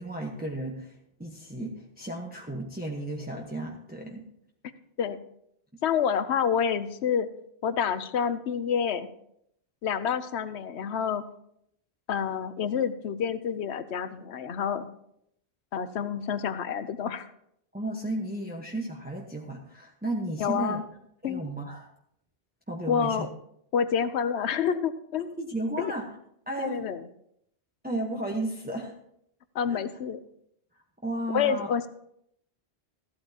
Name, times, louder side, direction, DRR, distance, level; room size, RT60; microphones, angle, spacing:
voice 1, 0.0-4.2 17.7-20.8 21.2-21.9 22.7-23.3 25.4-26.0 26.5-26.8 27.8-28.9 29.7-29.8 31.0-31.7, right 1 dB, 10° right, -1 dB, 1.1 m, -34 dB
voice 2, 5.8-7.3 7.6-9.1 9.8-11.2 12.1-14.9 15.7-17.3 20.4-20.8 21.2-21.4 22.9-23.3 23.7-25.3 25.8-25.9 26.6-27.0 29.5-30.2 31.3-31.9, left 7 dB, 90° left, 12 dB, 1.0 m, -28 dB
14.5 x 12.5 x 2.9 m, 0.73 s
omnidirectional pair, 1.1 m